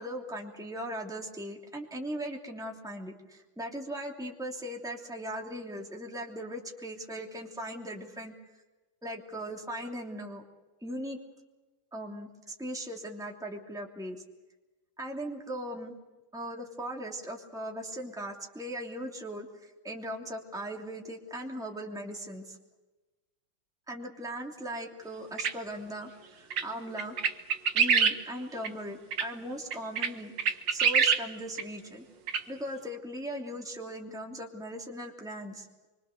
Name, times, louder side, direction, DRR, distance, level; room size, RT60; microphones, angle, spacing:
voice 1, 0.0-8.3 9.0-10.4 10.8-11.2 11.9-14.2 15.0-16.0 16.3-22.6 23.9-26.1 26.4-27.2 27.7-32.0 32.5-35.7, equal, ahead, 0 dB, 2.9 m, -39 dB
sound 1, 25.4-25.5 26.5-26.6 27.0-28.1 28.6-28.7 29.1-29.3 29.7-30.1 30.4-31.2 31.6-31.7 32.3-32.4, right 6 dB, 80° right, 2.1 m, -24 dB
27.0 x 24.0 x 6.7 m, 1.1 s
omnidirectional pair, 2.0 m